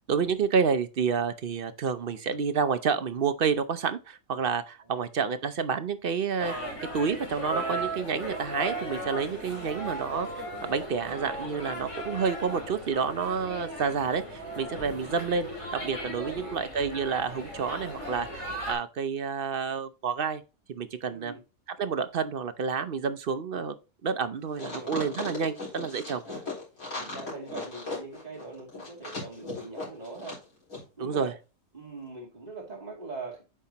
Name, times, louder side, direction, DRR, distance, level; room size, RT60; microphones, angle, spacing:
voice 1, 0.1-6.5 6.9-20.4 20.7-21.3 21.8-23.7 24.0-26.2 31.0-31.3, right 6 dB, 50° right, 0.7 m, -29 dB
sound 1, 6.4-18.7, right 1 dB, 20° left, 2.7 m, -37 dB
voice 2, 14.8-15.1 16.0-16.6 21.1-21.4 24.2-24.4 24.6-24.9 26.2-26.4 26.9-30.4 31.0-31.4 31.7-33.4, right 3 dB, 30° right, 2.8 m, -42 dB
sound 2, 24.5-30.4 30.7-30.8, left 3 dB, 90° left, 4.5 m, -37 dB
8.4 x 5.5 x 2.9 m
omnidirectional pair, 1.5 m